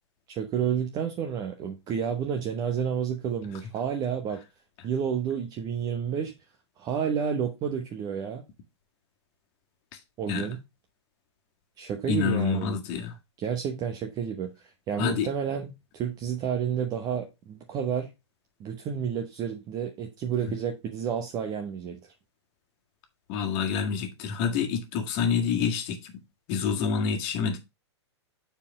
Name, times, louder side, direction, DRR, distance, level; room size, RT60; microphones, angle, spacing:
voice 1, 0.3-4.4 4.8-6.3 6.8-8.4 10.2-10.6 11.8-12.7 13.4-14.5 14.9-18.1 18.6-22.1, right 8 dB, 25° right, 1.0 m, -30 dB
voice 2, 12.1-13.1 15.0-15.3 23.3-26.1 26.5-27.6, left 6 dB, 35° left, 1.8 m, -27 dB
7.2 x 4.5 x 4.8 m
figure-of-eight pair, 110°, 15 cm